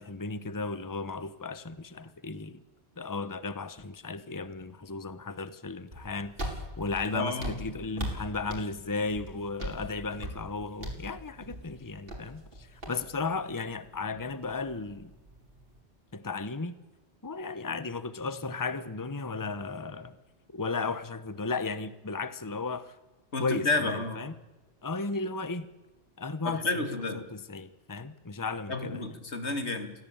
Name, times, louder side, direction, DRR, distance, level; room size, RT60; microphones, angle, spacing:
voice 1, 0.0-2.6 3.0-6.3 6.8-15.1 16.1-16.8 17.2-20.2 20.5-22.9 23.4-24.3 24.8-25.7 26.2-26.8 27.1-29.1, left 3 dB, 20° left, 14 dB, 1.0 m, -35 dB
sound 1, 5.9-15.8, equal, 60° right, 5.8 m, -41 dB
voice 2, 7.1-7.5 23.3-24.2 26.4-27.2 28.7-29.9, left 3 dB, 85° left, 8 dB, 2.6 m, -31 dB
25.0 x 16.5 x 8.8 m, 1.1 s
omnidirectional pair, 1.1 m